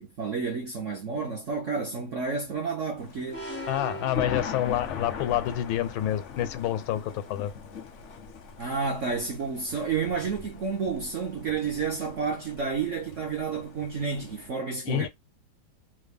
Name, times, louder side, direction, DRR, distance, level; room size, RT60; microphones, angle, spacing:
voice 1, 0.0-3.5 8.6-15.1, right 5 dB, 65° right, 0.7 m, -30 dB
Thunder, 3.0-14.5, left 6 dB, 60° left, 0.7 m, -41 dB
sound 1, 3.3-5.3, right 1 dB, 15° left, 0.4 m, -39 dB
voice 2, 3.7-7.5 14.9-15.1, left 12 dB, 90° left, 1.4 m, -28 dB
3.2 x 2.2 x 3.4 m
omnidirectional pair, 2.1 m